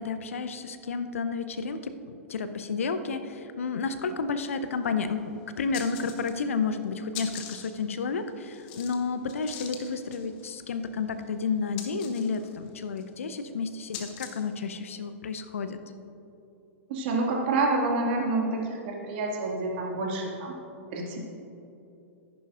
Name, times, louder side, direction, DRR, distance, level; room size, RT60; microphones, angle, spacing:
voice 1, 0.0-15.8, left 5 dB, 70° left, 10 dB, 0.6 m, -31 dB
sound 1, 4.7-4.8 5.1-5.2 5.6-6.6 6.8-14.6, left 8 dB, 45° left, 1.2 m, -44 dB
voice 2, 16.9-20.6 20.9-21.2, right 3 dB, 50° right, -1 dB, 2.2 m, -28 dB
13.5 x 10.5 x 2.5 m, 2.8 s
figure-of-eight pair, 105°, 8 cm